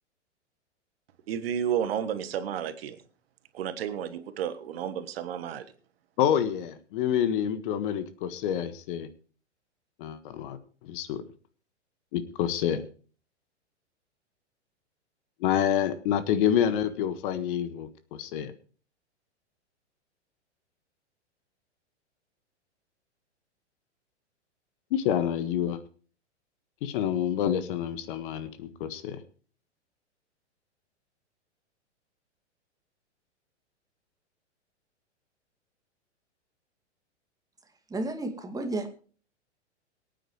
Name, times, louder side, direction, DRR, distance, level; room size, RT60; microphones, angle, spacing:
voice 1, 1.3-3.0 3.5-5.6, right 9 dB, 55° right, 10 dB, 1.4 m, -31 dB
voice 2, 6.2-9.1 10.0-10.6 10.8-11.2 12.1-12.9 15.4-18.5 24.9-25.8 26.8-29.2, left 9 dB, 45° left, 12 dB, 1.5 m, -28 dB
voice 3, 37.9-38.9, right 2 dB, 10° right, 6 dB, 2.0 m, -32 dB
23.0 x 9.3 x 3.1 m, 0.41 s
figure-of-eight pair, 105°, 35 cm